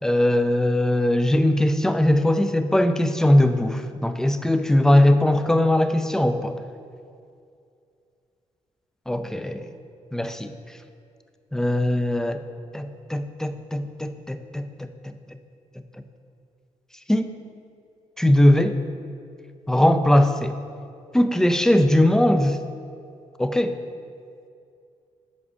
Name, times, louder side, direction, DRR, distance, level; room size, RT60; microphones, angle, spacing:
voice 1, 0.0-6.6 9.1-9.7 10.1-10.5 11.5-12.4 12.7-15.1 17.1-17.4 18.2-18.8 19.7-20.6 21.1-22.6 23.4-23.8, left 1 dB, 5° left, 8 dB, 0.4 m, -20 dB
7.5 x 4.9 x 4.9 m, 2.4 s
cardioid pair, 85°, 12 cm